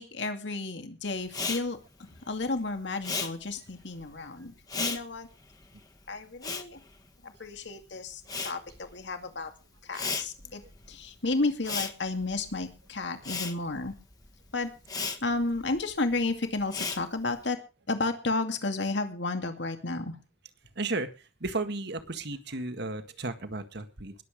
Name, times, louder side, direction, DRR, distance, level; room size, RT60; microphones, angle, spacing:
voice 1, 0.0-5.3 6.1-6.8 7.2-9.5 9.8-10.6 10.9-13.9 14.5-14.7 15.2-17.6 17.9-20.2, left 3 dB, 70° left, 6 dB, 2.3 m, -32 dB
Respiratory sounds, 1.3-7.7 8.0-17.5, left 4 dB, 20° left, 1.5 m, -37 dB
voice 2, 20.8-24.2, right 2 dB, 65° right, 9 dB, 1.8 m, -34 dB
20.5 x 8.1 x 5.1 m, 0.33 s
head